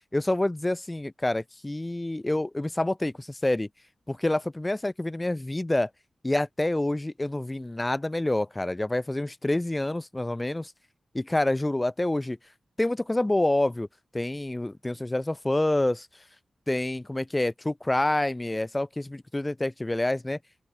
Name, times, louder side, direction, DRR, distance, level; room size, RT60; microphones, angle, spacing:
voice 1, 0.1-3.7 4.1-5.9 6.2-10.7 11.1-12.4 12.8-13.9 14.1-16.1 16.7-20.4, left 1 dB, 15° left, 1.5 m, -27 dB
open air
wide cardioid pair, 135°, 0 cm